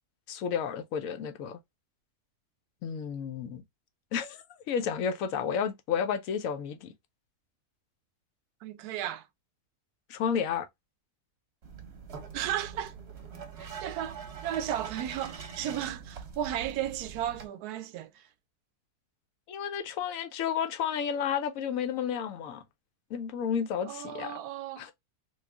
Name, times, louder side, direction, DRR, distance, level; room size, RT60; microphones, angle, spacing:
voice 1, 0.3-1.6 2.8-3.6 4.1-4.4 4.7-6.9 10.1-10.7 19.5-22.6 23.1-24.4 24.8-24.9, left 7 dB, 70° left, 0.9 m, -31 dB
voice 2, 8.6-9.3 12.3-13.0 13.6-18.3 23.9-24.9, right 11 dB, 80° right, 1.1 m, -34 dB
sound 1, 11.6-17.5, right 6 dB, 50° right, 0.9 m, -44 dB
3.1 x 2.4 x 3.3 m
omnidirectional pair, 1.7 m